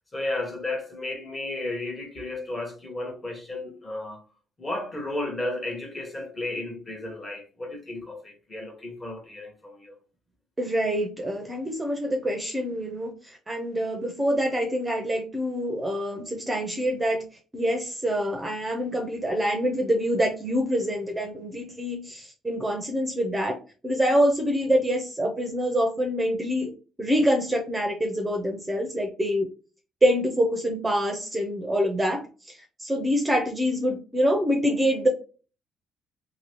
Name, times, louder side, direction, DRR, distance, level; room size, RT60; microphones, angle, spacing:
voice 1, 0.1-4.2 4.6-9.9, left 2 dB, 20° left, 1.0 m, -33 dB
voice 2, 10.6-13.1 13.5-17.2 17.5-23.6 23.8-26.7 27.0-29.5 30.0-32.2 32.5-35.1, equal, 15° right, 0.6 m, -25 dB
2.7 x 2.7 x 3.0 m
cardioid pair, 135°, 0 cm